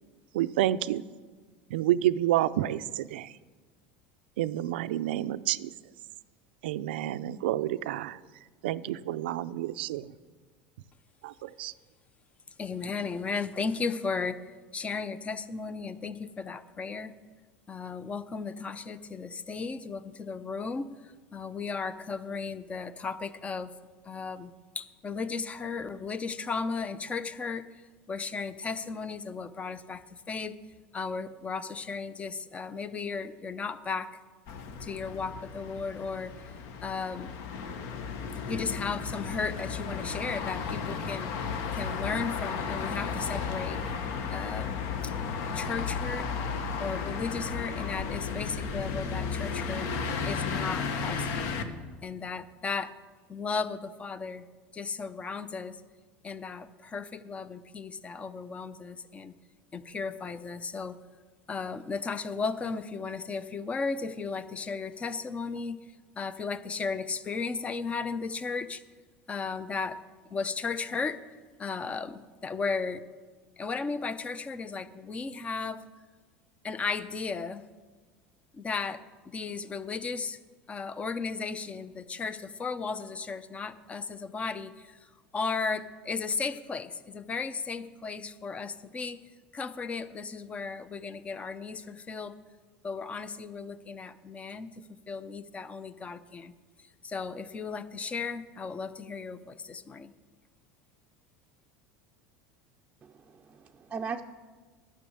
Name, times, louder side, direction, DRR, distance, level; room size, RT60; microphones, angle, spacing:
voice 1, 0.3-1.0 1.7-3.3 4.4-5.7 6.6-8.2 8.6-10.1 11.2-11.7, right 13 dB, 85° right, 14 dB, 0.4 m, -29 dB
voice 2, 12.6-14.4 14.7-17.1 17.7-20.8 21.3-23.7 24.1-24.5 24.8-27.6 28.1-30.0 30.3-30.5 30.9-34.1 34.9-36.3 36.8-37.3 38.5-41.3 41.8-43.8 44.3-44.7 45.6-46.3 46.8-49.9 50.3-51.5 52.0-52.9 53.3-54.4 54.8-55.7 56.2-56.7 56.9-59.3 59.7-60.9 61.5-65.8 66.2-68.8 69.3-70.0 70.3-71.2 71.6-73.0 73.6-75.8 76.6-77.6 78.6-79.0 79.3-80.4 80.7-84.7 85.3-89.2 89.5-92.3 92.8-94.7 95.1-96.5 97.1-99.4 99.7-100.1, left 4 dB, 25° left, 14 dB, 0.6 m, -35 dB
sound 1, 34.5-51.6, left 5 dB, 65° left, 1.1 m, -34 dB
voice 3, 103.0-104.2, right 5 dB, 20° right, 3 dB, 0.5 m, -38 dB
11.0 x 6.4 x 7.8 m, 1.4 s
supercardioid pair, 115°, 6 cm